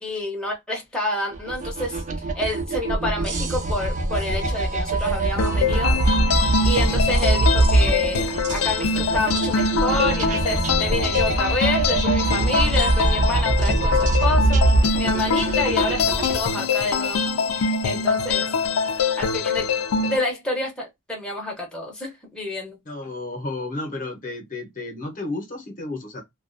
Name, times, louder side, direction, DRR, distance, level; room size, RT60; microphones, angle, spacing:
voice 1, 0.0-2.0 2.3-6.0 6.6-17.3 17.5-18.5 19.2-19.7 20.1-22.8, left 1 dB, 5° left, 0.7 m, -28 dB
sound 1, 1.3-16.4, right 2 dB, 35° right, 0.5 m, -23 dB
sound 2, 5.4-20.2, left 5 dB, 85° left, 0.4 m, -24 dB
voice 2, 22.9-26.2, left 2 dB, 40° left, 0.7 m, -32 dB
2.3 x 2.2 x 2.4 m
head